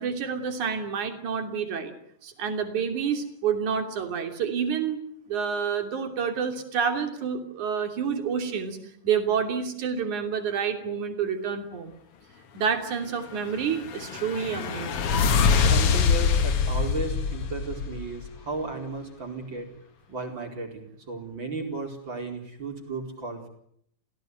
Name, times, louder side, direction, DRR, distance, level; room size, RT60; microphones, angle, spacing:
voice 1, 0.0-1.9 2.2-8.8 9.0-12.0 12.5-15.2, right 7 dB, 50° right, 6 dB, 4.1 m, -28 dB
sound 1, 13.4-18.4, left 5 dB, 80° left, 1.3 m, -24 dB
voice 2, 15.6-19.7 20.1-23.5, right 3 dB, 30° right, 3 dB, 4.8 m, -35 dB
30.0 x 16.5 x 9.4 m, 0.69 s
omnidirectional pair, 4.8 m